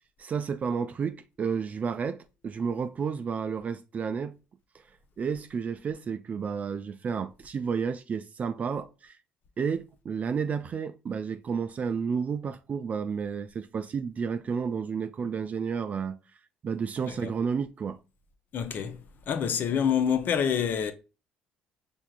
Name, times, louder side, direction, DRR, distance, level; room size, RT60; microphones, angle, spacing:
voice 1, 0.2-4.3 4.7-4.8 5.2-9.2 9.6-16.2 16.6-18.0, right 6 dB, 35° right, 0.3 m, -31 dB
voice 2, 18.5-19.0 19.3-20.9, left 8 dB, 50° left, 0.6 m, -27 dB
5.7 x 3.4 x 2.3 m
hypercardioid pair, 55°, 4 cm